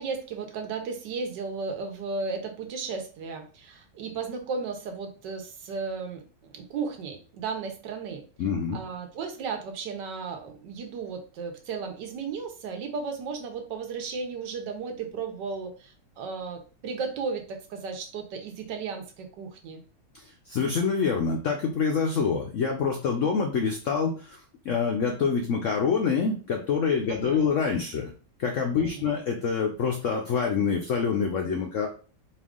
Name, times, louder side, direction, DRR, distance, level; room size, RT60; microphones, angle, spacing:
voice 1, 0.0-6.2 6.5-8.2 8.7-19.8 27.1-27.5 28.7-29.1, right 5 dB, 75° right, 5 dB, 1.5 m, -35 dB
voice 2, 8.4-8.8 20.5-24.2 24.7-28.1 28.4-31.9, left 5 dB, 70° left, 2 dB, 0.7 m, -26 dB
4.4 x 2.5 x 3.5 m, 0.37 s
omnidirectional pair, 1.9 m